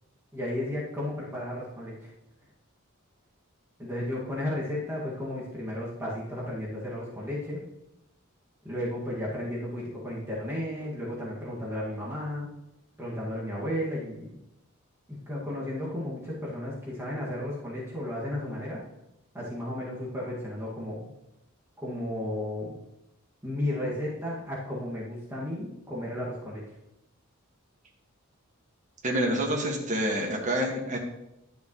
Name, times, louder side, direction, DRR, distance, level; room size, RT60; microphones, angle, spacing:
voice 1, 0.3-2.1 3.8-7.6 8.6-12.5 13.0-14.4 15.3-18.8 19.3-21.1 21.8-22.7 23.4-26.6, left 1 dB, 15° right, -7 dB, 1.9 m, -33 dB
voice 2, 29.0-31.0, right 1 dB, 35° right, 0 dB, 1.7 m, -27 dB
11.5 x 7.0 x 3.1 m, 0.87 s
head